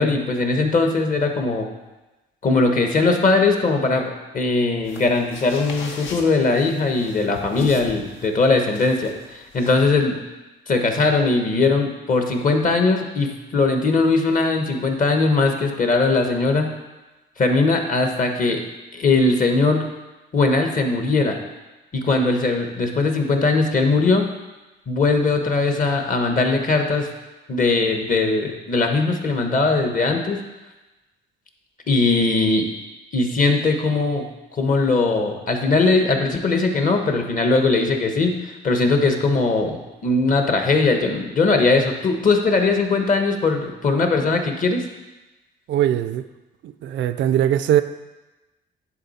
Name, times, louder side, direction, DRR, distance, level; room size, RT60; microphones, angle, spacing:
voice 1, 0.0-1.7 2.4-10.2 10.7-16.7 17.4-18.6 18.9-19.8 20.3-21.4 21.9-24.3 24.9-27.1 27.5-30.4 31.9-32.7 33.1-34.3 34.6-44.8, left 3 dB, 45° left, 4 dB, 1.1 m, -20 dB
sound 1, 4.8-9.8, left 5 dB, 75° left, 1.0 m, -38 dB
voice 2, 45.7-46.2 46.6-47.8, right 11 dB, 70° right, 12 dB, 0.4 m, -20 dB
10.0 x 3.9 x 4.2 m, 1.1 s
cardioid pair, 90°, 20 cm